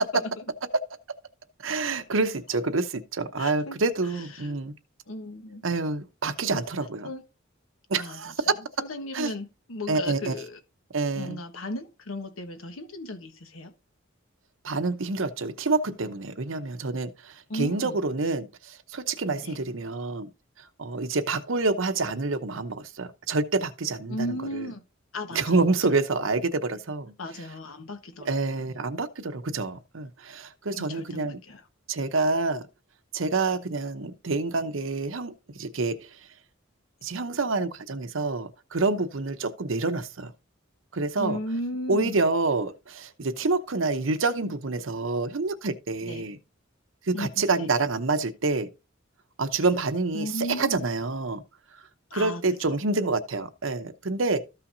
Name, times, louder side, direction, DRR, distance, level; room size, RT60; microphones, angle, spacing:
voice 1, 1.6-2.9 3.1-4.7 5.6-7.1 7.9-8.5 9.1-9.3 9.9-10.4 10.9-11.4 14.6-20.3 20.8-24.7 25.3-27.1 28.3-31.4 31.9-32.6 33.1-36.0 37.0-40.3 40.9-41.4 41.9-46.4 47.1-48.7 49.4-51.4 52.1-54.4, right 3 dB, 70° right, 0.8 m, -27 dB
voice 2, 3.4-3.7 4.4-4.6 5.1-5.6 6.5-6.6 7.0-7.2 7.9-8.3 8.8-10.6 11.1-13.7 17.5-18.0 19.4-19.6 24.1-24.8 25.1-25.6 27.2-28.6 30.7-31.6 41.2-42.2 46.0-46.2 47.1-47.7 50.1-50.8 52.1-52.8, left 1 dB, 85° left, 1.3 m, -35 dB
13.5 x 5.7 x 2.7 m
head